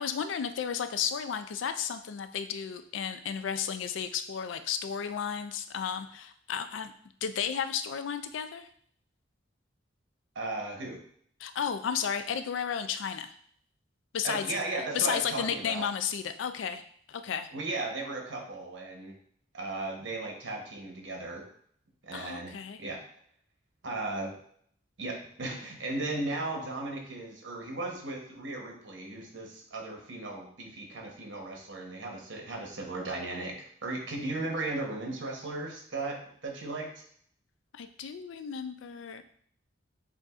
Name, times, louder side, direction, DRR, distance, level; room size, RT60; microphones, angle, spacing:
voice 1, 0.0-6.9 7.2-8.7 11.4-13.3 14.1-14.6 14.9-17.5 22.1-22.8 37.7-39.2, left 7 dB, 75° left, 9 dB, 0.4 m, -33 dB
voice 2, 10.3-11.0 14.2-15.9 17.5-19.2 19.5-21.5 22.0-23.0 23.8-24.3 25.0-37.0, right 2 dB, 75° right, 1 dB, 1.0 m, -36 dB
7.1 x 2.6 x 2.4 m, 0.62 s
head